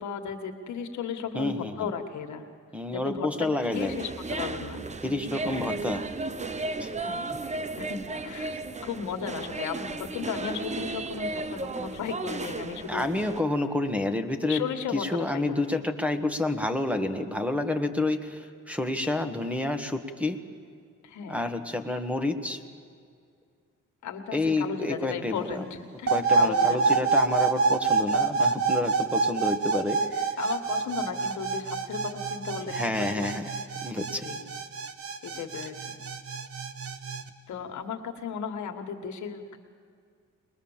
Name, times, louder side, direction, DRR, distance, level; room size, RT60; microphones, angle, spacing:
voice 1, 0.0-2.4 2.9-4.8 5.4-5.8 7.0-7.3 7.8-8.5 8.8-13.1 14.5-15.8 21.0-21.5 24.0-27.0 30.4-33.3 34.2-34.4 35.2-36.0 37.5-39.6, left 7 dB, 70° left, 5 dB, 1.8 m, -35 dB
voice 2, 1.3-1.9 2.7-3.9 5.0-6.0 6.8-6.9 12.9-14.6 14.9-20.4 21.3-22.6 24.3-25.6 26.1-30.0 32.7-33.4 33.8-34.2, left 2 dB, 5° right, 7 dB, 1.5 m, -29 dB
sound 1, 3.7-13.4, right 3 dB, 25° right, 0.8 m, -34 dB
sound 2, 26.1-37.2, right 4 dB, 50° right, 1.2 m, -27 dB
22.0 x 21.0 x 7.3 m, 2.2 s
cardioid pair, 90°, 30 cm